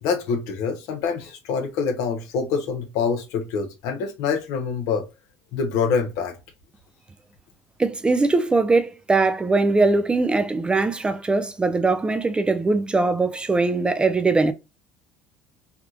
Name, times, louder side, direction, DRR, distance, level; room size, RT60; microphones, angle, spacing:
voice 1, 0.0-5.0 5.5-6.3, left 5 dB, 75° left, 0.9 m, -25 dB
voice 2, 7.8-14.5, right 3 dB, 15° right, 0.5 m, -21 dB
3.5 x 2.3 x 2.9 m
supercardioid pair, 95°, 6 cm